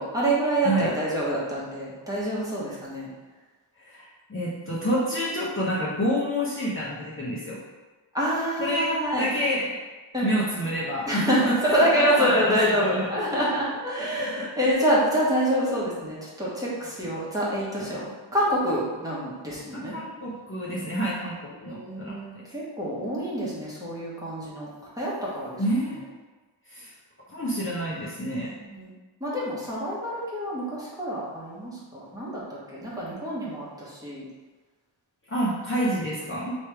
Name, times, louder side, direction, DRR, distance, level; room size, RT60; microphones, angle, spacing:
voice 1, 0.0-3.1 8.1-9.3 10.1-10.3 11.1-19.9 21.6-24.7 25.0-25.6 28.6-28.9 29.2-32.4 32.7-34.2, equal, 10° right, -8 dB, 1.2 m, -26 dB
voice 2, 3.8-7.6 8.6-8.9 9.2-9.7 10.2-13.4 14.0-14.5 19.7-22.2 25.6-26.1 26.7-26.9 27.3-28.5 35.3-36.6, equal, 25° left, -8 dB, 0.9 m, -28 dB
3.2 x 3.1 x 4.6 m, 1.3 s
wide cardioid pair, 105°, 47 cm